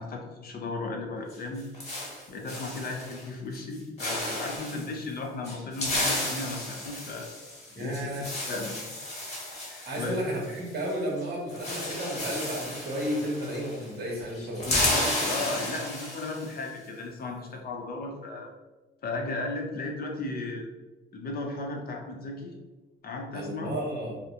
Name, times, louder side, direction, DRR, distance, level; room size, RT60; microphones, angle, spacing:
voice 1, 0.0-1.7 2.3-7.3 7.8-8.9 9.7-10.2 14.6-18.5 19.0-20.7 21.1-22.5 23.0-23.7, left 2 dB, 50° left, 1 dB, 0.5 m, -35 dB
sound 1, 1.3-3.3 3.5-3.7 4.0-4.9 5.4-10.9 11.2-11.3 11.5-13.9 14.2-16.6, left 1 dB, 35° left, 1.2 m, -33 dB
voice 2, 7.8-8.3 9.8-14.7 23.3-24.2, equal, 55° right, -2 dB, 0.9 m, -32 dB
2.3 x 2.1 x 2.7 m, 1.2 s
cardioid pair, 90°, 20 cm